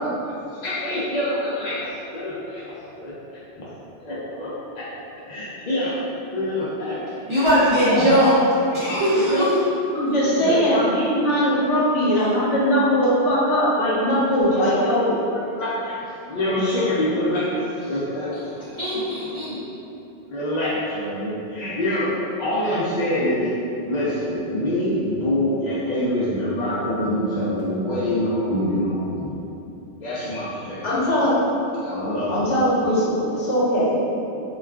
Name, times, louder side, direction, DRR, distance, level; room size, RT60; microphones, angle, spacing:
voice 1, 0.5-2.6 3.0-3.7 4.0-4.9 5.1-6.0 6.3-7.1 7.3-7.5 7.9-8.1 9.1-9.4 10.2-10.8 14.5-14.6 15.3-18.3 19.4-19.6 20.3-22.1 22.4-23.5 23.8-29.4 30.0-31.1 31.8-32.4, left 1 dB, 60° left, -9 dB, 0.4 m, -26 dB
voice 2, 7.3-8.3 8.7-9.4 18.8-19.5, equal, 40° right, -13 dB, 0.4 m, -19 dB
voice 3, 9.9-15.2 30.8-31.3 32.0-34.0, equal, 80° left, -7 dB, 1.0 m, -20 dB
2.3 x 2.3 x 3.3 m, 2.9 s
omnidirectional pair, 1.2 m